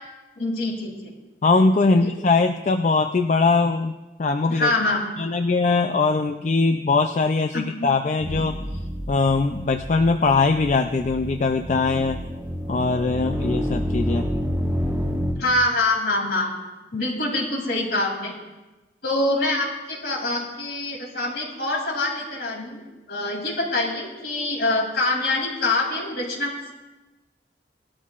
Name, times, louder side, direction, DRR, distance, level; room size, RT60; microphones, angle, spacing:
voice 1, 0.4-1.1 1.8-2.1 4.5-5.0 7.5-7.9 15.4-16.5 16.9-18.3 19.0-22.8 23.1-26.5, left 2 dB, 65° left, -1 dB, 2.9 m, -25 dB
voice 2, 1.4-4.7 5.2-8.6 9.1-12.2 12.7-14.3, left 3 dB, 40° left, 7 dB, 0.4 m, -21 dB
sound 1, 8.2-15.3, equal, 10° right, 1.6 m, -29 dB
19.5 x 12.5 x 2.4 m, 1.1 s
head